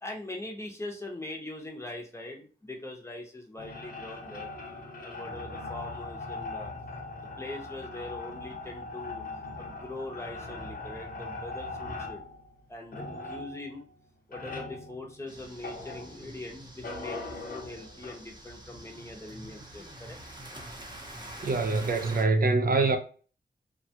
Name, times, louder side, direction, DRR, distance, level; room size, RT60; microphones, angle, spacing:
voice 1, 0.0-4.5 5.0-6.7 7.4-9.2 9.6-12.2 12.7-13.8 14.3-20.2, left 2 dB, 15° left, 0.7 m, -42 dB
sound 1, 3.6-16.4 16.8-18.2, left 3 dB, 55° left, 0.7 m, -40 dB
sound 2, 15.3-22.2, right 1 dB, 25° right, 0.7 m, -46 dB
voice 2, 21.4-23.0, right 3 dB, 55° right, 0.4 m, -24 dB
3.3 x 2.2 x 2.7 m
wide cardioid pair, 115°, 18 cm